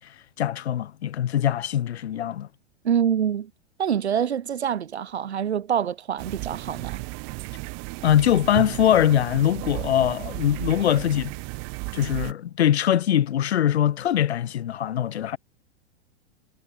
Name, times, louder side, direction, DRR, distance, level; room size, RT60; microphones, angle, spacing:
voice 1, 0.4-2.5 8.0-11.3 11.9-15.4, left 10 dB, 75° left, 1.5 m, -22 dB
voice 2, 2.8-3.5 3.8-7.0, right 8 dB, 80° right, 4.9 m, -25 dB
sound 1, 6.2-12.3, right 39 dB, 45° right, 3.9 m, -34 dB
hypercardioid pair, 105°, 33 cm